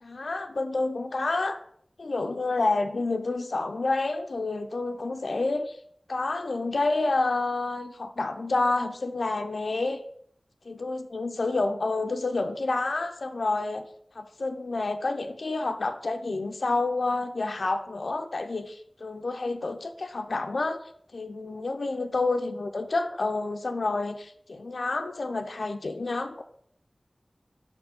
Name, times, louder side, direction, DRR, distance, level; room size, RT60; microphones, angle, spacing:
voice 1, 0.0-1.6 2.0-5.8 6.1-10.0 10.7-13.9 14.2-20.8 21.1-26.4, left 3 dB, 80° left, 6 dB, 0.4 m, -29 dB
5.9 x 4.3 x 4.2 m, 0.66 s
wide cardioid pair, 70°, 0 cm